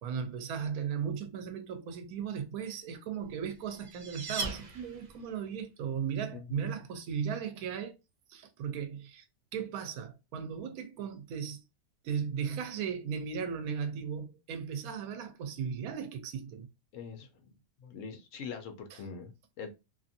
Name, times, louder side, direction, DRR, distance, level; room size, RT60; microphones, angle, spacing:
voice 1, 0.0-7.9 8.3-9.2 9.5-11.6 12.0-16.7 18.9-19.0, right 7 dB, 85° right, 1.1 m, -36 dB
sound 1, 3.3-5.4, right 3 dB, 50° right, 0.5 m, -39 dB
voice 2, 16.9-17.5 17.8-19.7, left 6 dB, 70° left, 0.9 m, -43 dB
2.8 x 2.5 x 2.6 m
omnidirectional pair, 1.5 m